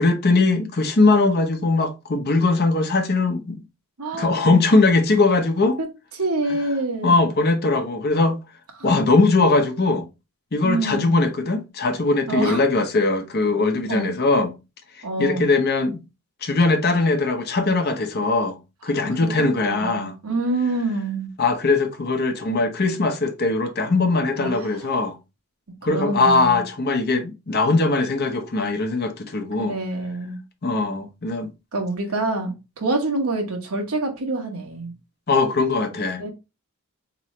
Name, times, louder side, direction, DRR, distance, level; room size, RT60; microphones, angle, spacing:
voice 1, 0.0-3.6 4.1-5.8 7.0-8.4 8.8-10.0 10.5-14.6 15.2-16.0 16.4-20.2 21.4-25.2 25.8-29.8 30.6-31.5 35.3-36.3, left 3 dB, 45° left, 0.7 m, -20 dB
voice 2, 4.0-4.5 5.8-5.9 6.1-7.2 8.8-8.9 10.6-11.2 12.3-12.6 13.9-14.1 15.0-15.5 19.2-21.3 24.4-24.8 25.8-26.6 29.7-30.4 31.7-34.9 36.2-36.3, right 2 dB, 80° right, 1.2 m, -26 dB
4.1 x 3.0 x 3.0 m
head